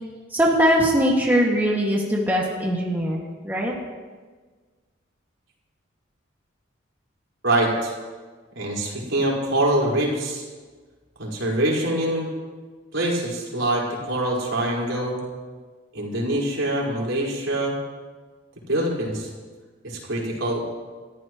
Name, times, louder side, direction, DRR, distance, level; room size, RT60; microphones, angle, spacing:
voice 1, 0.3-3.7, equal, 10° right, -3 dB, 2.0 m, -21 dB
voice 2, 7.4-7.9 8.5-10.4 11.2-12.3 12.9-15.2 15.9-17.8 18.7-19.3 19.8-20.6, right 1 dB, 75° right, -3 dB, 4.8 m, -24 dB
29.5 x 14.5 x 3.1 m, 1.4 s
head